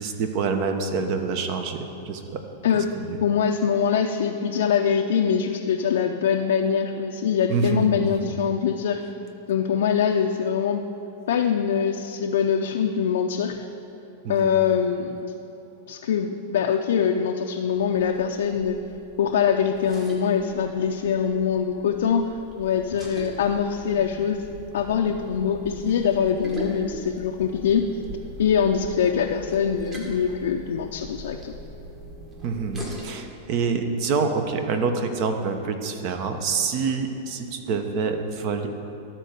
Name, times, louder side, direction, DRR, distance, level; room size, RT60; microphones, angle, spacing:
voice 1, 0.0-2.4 2.7-3.2 7.5-8.3 14.2-14.6 32.4-38.7, right 4 dB, 50° right, 6 dB, 0.9 m, -27 dB
voice 2, 3.2-9.0 9.5-10.8 11.3-13.6 14.3-15.3 15.9-18.8 19.2-22.3 22.6-24.4 24.7-27.9 28.4-31.5, left 7 dB, 80° left, 2 dB, 0.5 m, -23 dB
sound 1, 17.7-33.0, right 1 dB, 30° right, 1.7 m, -41 dB
12.5 x 4.5 x 6.6 m, 2.8 s
hypercardioid pair, 135°, 0 cm